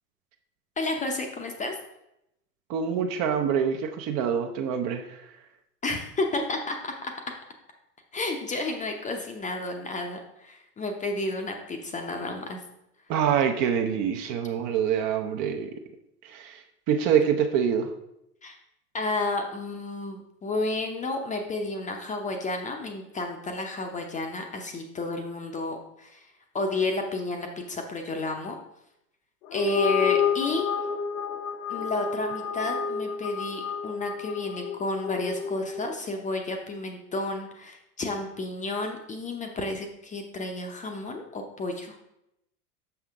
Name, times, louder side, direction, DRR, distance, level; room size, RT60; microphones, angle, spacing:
voice 1, 0.8-1.8 5.8-7.1 8.1-12.6 18.4-18.5 18.9-26.2 26.5-28.6 29.5-30.7 31.7-42.0, left 2 dB, 15° left, 3 dB, 0.7 m, -31 dB
voice 2, 2.7-5.2 13.1-15.7 16.2-17.9, right 8 dB, 40° right, 5 dB, 0.7 m, -25 dB
sound 1, 29.4-36.0, left 7 dB, 60° left, 0.8 m, -29 dB
6.4 x 5.8 x 3.5 m, 0.82 s
figure-of-eight pair, 90°, 48 cm